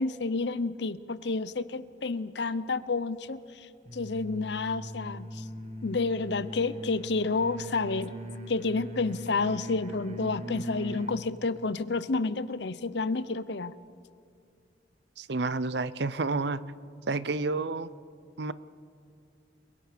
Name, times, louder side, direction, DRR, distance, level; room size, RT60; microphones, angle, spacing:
voice 1, 0.0-5.5 5.8-8.1 8.5-13.7, left 3 dB, 65° left, 15 dB, 0.7 m, -30 dB
sound 1, 3.8-11.2, right 1 dB, 35° right, 1.7 m, -40 dB
voice 2, 15.2-16.6 17.1-17.9 18.4-18.5, right 3 dB, 60° right, 16 dB, 0.7 m, -30 dB
29.5 x 22.0 x 5.1 m, 2.4 s
head